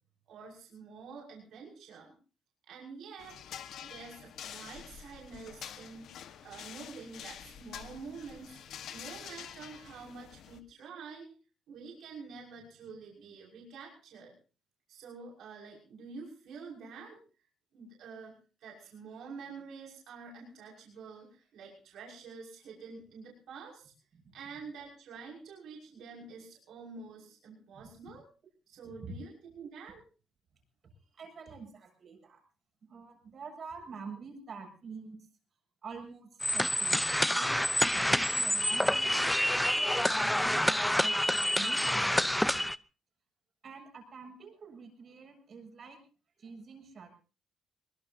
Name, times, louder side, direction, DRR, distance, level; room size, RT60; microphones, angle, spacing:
voice 1, 0.3-2.1 2.7-3.4 3.8-11.3 11.7-14.3 14.9-17.2 17.7-18.3 18.6-23.9 24.3-28.3 28.7-30.0, right 5 dB, 75° right, -2 dB, 6.0 m, -48 dB
sound 1, 3.2-10.6, left 9 dB, 75° left, 1.4 m, -47 dB
voice 2, 31.1-32.4 32.8-35.3 35.8-37.6 37.9-39.3 40.1-42.5 43.6-46.0 46.4-47.1, right 5 dB, 55° right, 3 dB, 7.5 m, -47 dB
sound 2, 36.4-42.8, left 1 dB, 5° left, 0.7 m, -28 dB
22.5 x 21.0 x 2.8 m, 0.36 s
cardioid pair, 75°, 0 cm